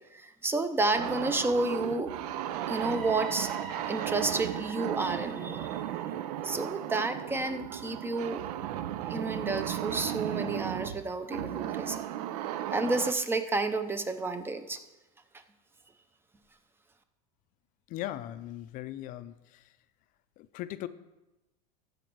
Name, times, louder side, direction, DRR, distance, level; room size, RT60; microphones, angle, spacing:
voice 1, 0.1-2.2 2.7-3.5 3.9-5.8 6.4-8.5 9.0-12.0 12.7-14.8 15.3-15.4, right 2 dB, 10° right, 10 dB, 0.6 m, -31 dB
sound 1, 0.9-13.1, right 12 dB, 75° right, 0.5 m, -35 dB
sound 2, 2.3-10.2, right 4 dB, 50° right, 3.3 m, -48 dB
voice 2, 17.9-19.8 20.4-20.9, left 13 dB, 40° left, 13 dB, 0.5 m, -39 dB
15.0 x 5.1 x 4.6 m, 1.0 s
supercardioid pair, 135°, 20 cm